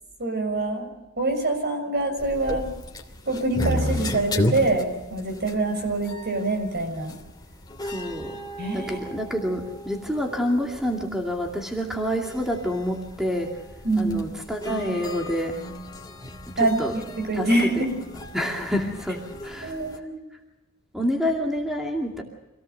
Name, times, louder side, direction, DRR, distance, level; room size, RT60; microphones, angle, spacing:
voice 1, 0.2-0.9 1.2-2.7 3.3-7.2 8.6-9.2 13.8-14.4 16.6-18.0 19.6-20.3, right 2 dB, 50° right, 4 dB, 6.4 m, -25 dB
sound 1, 2.2-20.0, left 1 dB, 20° left, 2.9 m, -34 dB
voice 2, 7.8-8.4 8.7-13.5 14.0-15.6 16.6-16.9 17.3-17.5 18.3-19.8 20.9-22.2, equal, ahead, 0 dB, 2.5 m, -27 dB
26.5 x 18.0 x 6.8 m, 0.99 s
head